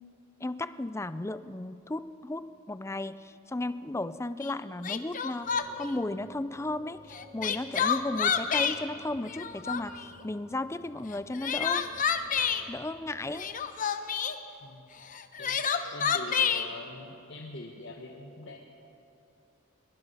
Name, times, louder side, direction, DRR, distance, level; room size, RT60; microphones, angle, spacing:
voice 1, 0.4-11.9 12.7-13.5, left 2 dB, 15° left, 14 dB, 0.4 m, -35 dB
Crying sobbing, 4.4-4.5 4.8-5.9 7.1-8.8 9.2-10.0 11.1-12.6 13.3-14.4 15.1-16.7, left 7 dB, 40° left, 0.8 m, -28 dB
sound 1, 5.4-13.5, equal, 30° right, 1.8 m, -55 dB
voice 2, 15.9-18.6, left 2 dB, 55° left, 0 dB, 1.5 m, -43 dB
22.5 x 22.0 x 5.6 m, 2.8 s
head